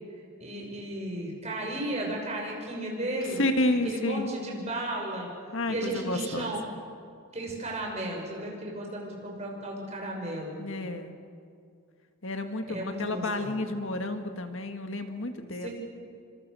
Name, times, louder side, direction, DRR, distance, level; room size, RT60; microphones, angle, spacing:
voice 1, 0.4-3.4 3.8-5.3 5.7-6.6 7.3-10.6 12.7-13.5 15.6-15.7, right 1 dB, 30° right, -1 dB, 6.4 m, -34 dB
voice 2, 3.4-4.3 5.5-6.5 10.6-11.1 12.2-15.7, left 2 dB, 60° left, 6 dB, 1.8 m, -30 dB
29.5 x 26.0 x 6.9 m, 2.4 s
head